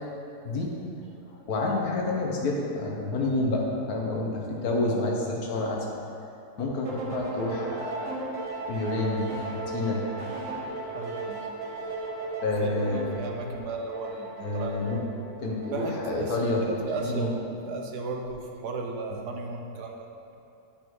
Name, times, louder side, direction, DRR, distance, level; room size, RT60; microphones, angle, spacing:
voice 1, 1.5-5.9 6.6-8.1 8.7-10.0 12.4-13.0 14.4-15.0 15.4-16.6 17.0-17.3, left 2 dB, 70° left, -1 dB, 1.4 m, -28 dB
sound 1, 6.9-16.3, right 3 dB, 55° right, 1.2 m, -36 dB
voice 2, 10.9-11.5 12.6-14.7 15.7-17.3 17.6-20.1, right 3 dB, 90° right, 2 dB, 1.3 m, -35 dB
9.9 x 5.2 x 3.1 m, 2.6 s
omnidirectional pair, 1.7 m